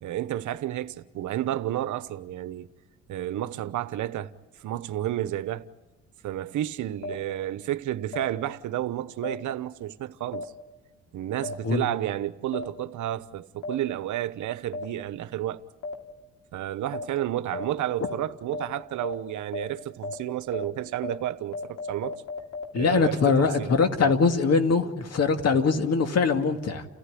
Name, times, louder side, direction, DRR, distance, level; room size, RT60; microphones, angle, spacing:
voice 1, 0.0-2.7 3.1-4.3 4.6-5.6 6.2-10.5 11.1-15.6 16.5-22.2 22.7-24.1 25.5-25.7, right 13 dB, 75° right, 1.0 m, -31 dB
sound 1, 7.0-7.1 8.1-8.2 9.2-9.3 10.3-10.4 11.4-11.5 12.5-12.6 13.6-13.7 14.7-14.8 15.8-15.9 16.9-17.0 17.5-17.6 18.0-18.1 18.5-18.6 19.0-19.1 19.5-19.6 20.0-20.1 20.5-20.6 21.0-21.1 21.5-22.6, left 3 dB, 80° left, 3.1 m, -33 dB
voice 2, 22.7-26.9, left 5 dB, 55° left, 2.2 m, -22 dB
29.5 x 15.0 x 9.9 m
cardioid pair, 90°, 30 cm